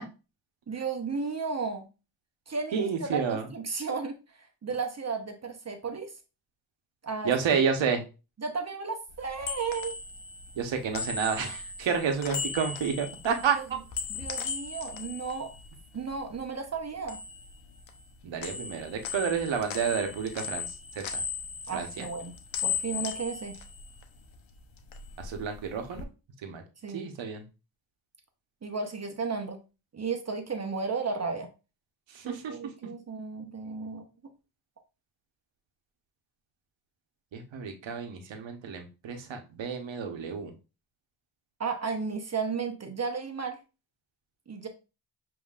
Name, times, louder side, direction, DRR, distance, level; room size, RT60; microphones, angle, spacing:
voice 1, 0.7-1.9 2.5-6.1 7.0-7.3 8.4-9.9 13.5-13.6 14.1-15.5 15.9-17.2 21.7-22.3 22.6-23.5 26.8-27.0 28.6-29.6 29.9-31.5 32.2-34.0 41.6-43.6 44.5-44.7, right 5 dB, 35° right, 5 dB, 0.9 m, -34 dB
voice 2, 2.7-3.5 7.2-8.0 10.5-13.6 18.2-21.2 21.7-22.1 25.2-26.1 26.4-26.6 26.9-27.4 32.1-32.6 37.3-40.5, right 6 dB, 75° right, 5 dB, 1.1 m, -30 dB
sound 1, 9.1-16.4 16.7-18.1 18.4-24.4 24.7-26.0, left 5 dB, 80° left, 0.8 m, -37 dB
7.3 x 3.0 x 2.4 m, 0.30 s
cardioid pair, 80°, 46 cm